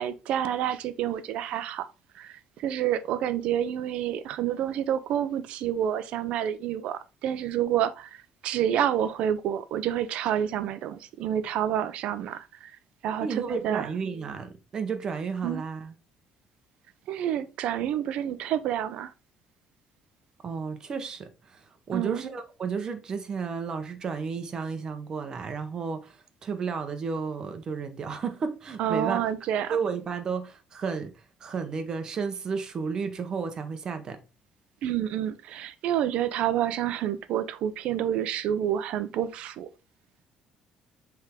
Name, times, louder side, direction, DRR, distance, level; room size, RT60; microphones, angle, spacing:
voice 1, 0.0-1.9 2.1-12.7 13.0-13.9 15.4-15.6 17.1-19.1 21.9-22.2 28.8-29.8 34.8-39.7, right 10 dB, 65° right, 0.7 m, -28 dB
voice 2, 13.2-15.9 20.4-29.2 29.7-31.1 31.4-34.2, right 5 dB, 35° right, 1.1 m, -32 dB
7.4 x 3.6 x 3.6 m
cardioid pair, 145°, 2 cm